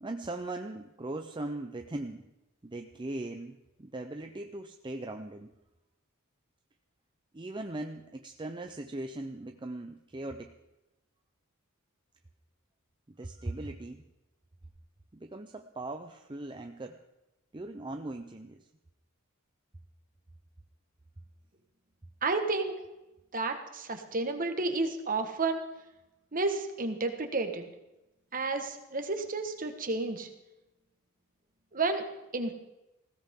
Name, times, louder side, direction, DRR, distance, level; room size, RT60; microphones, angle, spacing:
voice 1, 0.0-2.3 2.6-5.5 7.3-10.5 13.1-14.0 15.1-17.0 17.5-18.6, right 2 dB, 20° right, 5 dB, 0.6 m, -39 dB
voice 2, 22.2-22.7 23.3-25.6 26.3-27.6 28.3-30.3 31.7-32.0 32.3-32.5, right 3 dB, 40° right, 6 dB, 1.5 m, -31 dB
20.0 x 16.0 x 3.8 m, 0.98 s
head